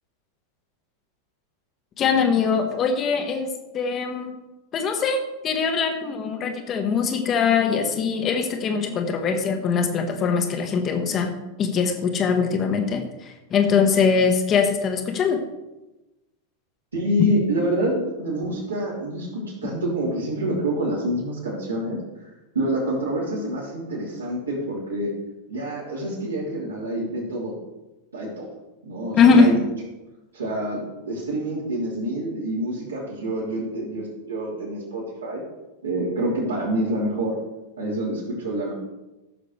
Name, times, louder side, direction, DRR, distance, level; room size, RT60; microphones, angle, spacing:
voice 1, 2.0-4.4 4.7-11.3 11.6-15.4 17.2-17.3 29.2-29.5, left 5 dB, 30° left, 5 dB, 1.2 m, -22 dB
voice 2, 16.9-22.0 22.5-25.1 25.5-27.5 28.1-28.5 28.8-29.6 30.3-35.4 35.8-37.4 37.8-38.7, right 1 dB, 75° right, -6 dB, 3.5 m, -27 dB
15.5 x 6.6 x 3.3 m, 1.0 s
figure-of-eight pair, 90°, 0 cm